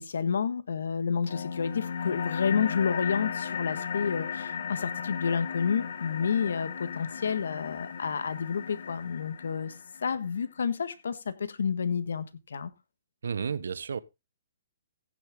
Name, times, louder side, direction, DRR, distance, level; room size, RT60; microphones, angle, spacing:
voice 1, 0.0-9.7 10.0-12.7, left 6 dB, 85° left, 1.5 m, -30 dB
sound 1, 1.3-10.3, left 7 dB, 65° left, 1.7 m, -36 dB
voice 2, 13.2-14.0, right 6 dB, 85° right, 0.8 m, -32 dB
16.0 x 6.5 x 3.6 m
hypercardioid pair, 160°, 0 cm